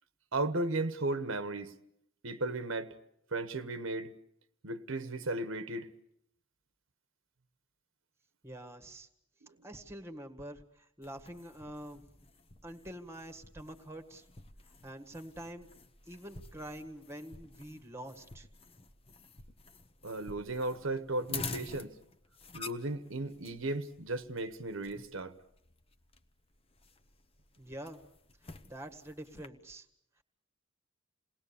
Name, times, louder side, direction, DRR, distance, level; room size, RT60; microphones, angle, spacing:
voice 1, 0.3-1.7 2.2-2.9 3.3-4.1 4.6-5.9 20.0-22.0 22.5-25.3, right 2 dB, 75° right, 1.2 m, -35 dB
voice 2, 8.4-9.1 9.6-12.0 12.6-14.2 14.8-15.7 16.1-18.5 27.6-28.0 28.6-29.9, right 1 dB, 15° right, 1.7 m, -46 dB
sound 1, 11.0-29.5, left 4 dB, 30° left, 1.1 m, -49 dB
28.5 x 19.5 x 7.0 m
head